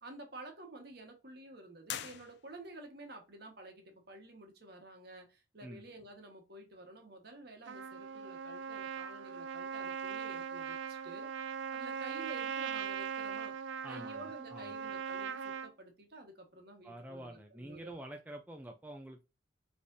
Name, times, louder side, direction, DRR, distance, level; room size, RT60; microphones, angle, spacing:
voice 1, 0.0-11.3 11.7-13.5 13.9-17.9, right 2 dB, 55° right, 3 dB, 1.2 m, -51 dB
sound 1, 1.8-2.9, left 10 dB, 60° left, 0.4 m, -44 dB
Trumpet, 7.7-15.7, right 7 dB, 70° right, 0.5 m, -40 dB
voice 2, 13.8-14.7 16.8-19.3, right 1 dB, 10° right, 3 dB, 0.3 m, -47 dB
5.3 x 3.3 x 2.6 m, 0.29 s
head